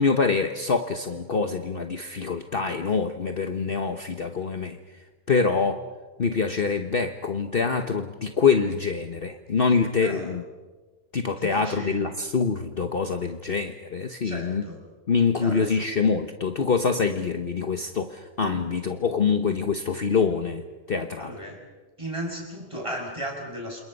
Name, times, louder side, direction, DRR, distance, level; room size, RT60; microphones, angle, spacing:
voice 1, 0.0-5.0 5.3-5.8 6.2-10.4 11.1-14.6 15.1-20.6 20.9-21.4, left 5 dB, 45° left, 6 dB, 1.2 m, -25 dB
voice 2, 10.0-10.3 11.4-12.1 14.2-14.8 15.4-15.7 21.2-21.7 22.0-23.8, equal, 20° right, 0 dB, 6.4 m, -35 dB
28.5 x 28.0 x 5.4 m, 1.3 s
omnidirectional pair, 1.4 m